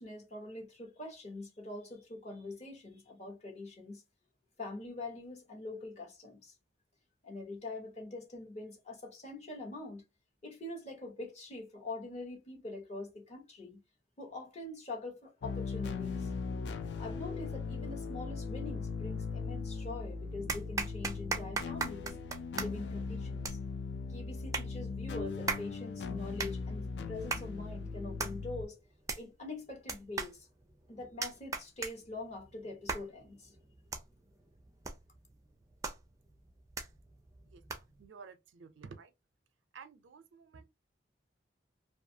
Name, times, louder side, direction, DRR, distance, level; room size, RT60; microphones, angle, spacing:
voice 1, 0.0-4.0 4.6-6.6 7.2-10.0 10.4-13.8 14.2-16.3 17.0-22.2 22.6-23.6 24.1-28.8 29.1-30.5 30.9-33.5, left 2 dB, 35° left, 0.9 m, -44 dB
sound 1, 15.4-28.7, left 4 dB, 65° left, 0.3 m, -39 dB
sound 2, 19.4-20.0 20.5-38.1, right 4 dB, 15° right, 0.4 m, -41 dB
voice 2, 37.4-39.1 39.7-40.6, right 5 dB, 85° right, 0.4 m, -52 dB
2.5 x 2.3 x 2.6 m
head